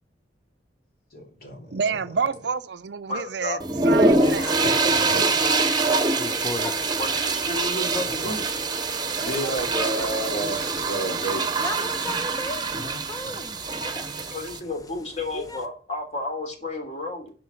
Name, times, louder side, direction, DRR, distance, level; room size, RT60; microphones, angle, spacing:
voice 1, 1.1-2.0 4.6-5.3 9.0-12.8 13.2-13.7, right 1 dB, 55° left, 3.4 m, -33 dB
voice 2, 1.7-3.6 3.8-4.6, right 5 dB, 70° right, 0.5 m, -28 dB
voice 3, 3.1-3.6 7.0-8.4 14.3-17.3, left 2 dB, 40° left, 3.0 m, -32 dB
sound 1, 3.6-14.6, right 3 dB, 25° right, 0.9 m, -24 dB
sound 2, 4.1-15.7, left 2 dB, 20° left, 0.8 m, -39 dB
10.5 x 4.5 x 6.9 m
head